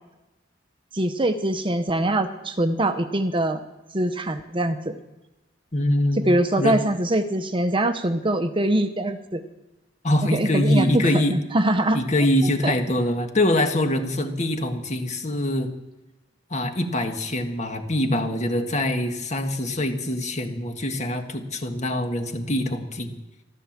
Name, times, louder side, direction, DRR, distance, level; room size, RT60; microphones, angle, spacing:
voice 1, 0.9-3.6 3.9-5.0 6.2-9.4 10.3-11.2 11.5-12.0 12.6-12.7, right 1 dB, 30° right, 8 dB, 0.8 m, -23 dB
voice 2, 5.7-6.3 6.6-6.8 10.0-11.4 11.9-15.7 16.5-23.2, left 1 dB, 40° left, 5 dB, 1.6 m, -24 dB
14.0 x 13.0 x 7.4 m, 1.0 s
head